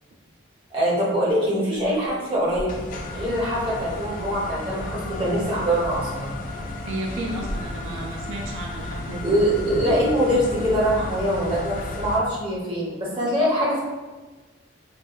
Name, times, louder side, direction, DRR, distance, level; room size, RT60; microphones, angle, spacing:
voice 1, 0.7-2.7 3.1-6.4 9.2-13.8, equal, 25° right, -7 dB, 0.9 m, -23 dB
sound 1, 1.7-3.2 5.8-6.2 7.1-8.3, equal, 10° left, 1.1 m, -38 dB
sound 2, 2.7-12.2, left 2 dB, 40° left, 0.3 m, -33 dB
voice 2, 6.9-9.3, right 2 dB, 85° right, 0 dB, 0.4 m, -33 dB
3.3 x 3.0 x 2.2 m, 1.2 s
head